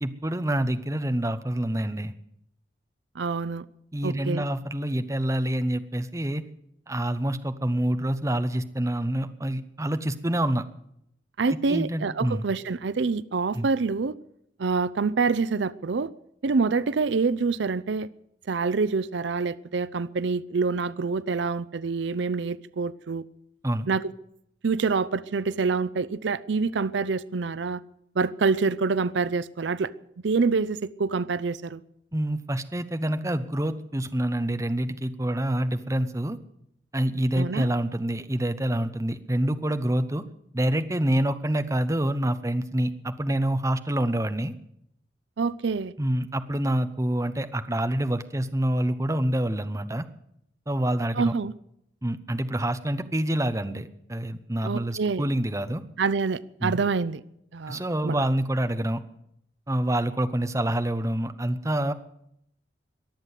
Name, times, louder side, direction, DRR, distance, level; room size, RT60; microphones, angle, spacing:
voice 1, 0.0-2.1 3.9-6.4 6.9-10.6 11.5-12.4 13.5-13.7 23.6-23.9 32.1-36.4 36.9-40.2 40.5-44.5 46.0-50.0 50.7-51.3 52.0-55.8 56.6-56.8 57.7-59.0 59.7-61.9, right 1 dB, 15° right, 9 dB, 0.8 m, -27 dB
voice 2, 3.2-3.7 4.0-4.4 11.4-14.1 14.6-16.1 16.4-18.1 18.5-23.3 23.9-24.0 24.6-27.8 28.2-29.9 30.2-31.8 37.3-37.7 45.4-45.9 51.2-51.5 54.6-55.2 56.0-57.2 57.5-58.3, right 4 dB, 75° right, 18 dB, 0.5 m, -26 dB
22.0 x 7.6 x 8.2 m, 0.76 s
head